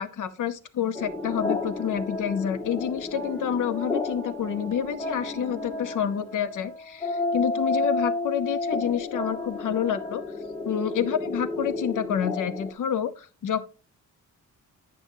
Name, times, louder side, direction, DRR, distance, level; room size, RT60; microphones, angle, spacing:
voice 1, 0.0-10.2 10.6-13.6, left 8 dB, 75° left, 11 dB, 0.8 m, -28 dB
sound 1, 0.9-12.7, left 2 dB, 10° left, 1.1 m, -31 dB
10.5 x 6.2 x 2.7 m, 0.34 s
wide cardioid pair, 170°, 31 cm